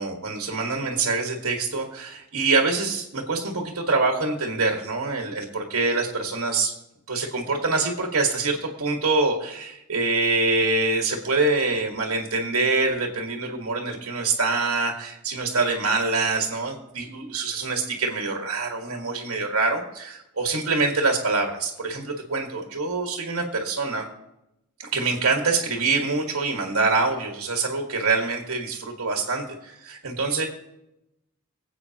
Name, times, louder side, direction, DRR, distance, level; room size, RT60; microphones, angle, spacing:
voice 1, 0.0-6.7 7.1-24.1 24.8-30.4, right 3 dB, 65° right, 1 dB, 1.6 m, -25 dB
23.5 x 8.3 x 2.9 m, 0.87 s
head